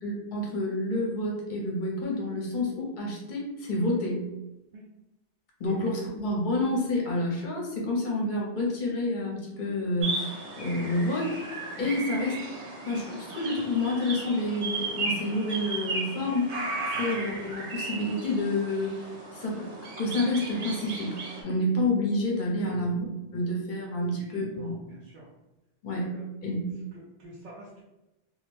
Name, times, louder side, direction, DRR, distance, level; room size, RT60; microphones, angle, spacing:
voice 1, 0.0-4.3 5.6-11.3 11.8-12.5 12.8-16.5 17.0-19.1 19.4-19.7 20.0-21.2 21.4-23.0 23.3-24.7 25.8-26.1 26.4-26.6, left 1 dB, 50° left, -3 dB, 0.8 m, -29 dB
sound 1, 10.0-21.4, right 2 dB, 85° right, 0.9 m, -35 dB
voice 2, 24.0-25.3 26.0-26.3 27.2-27.8, right 1 dB, 60° right, -6 dB, 0.6 m, -46 dB
2.3 x 2.1 x 3.1 m, 0.97 s
omnidirectional pair, 1.1 m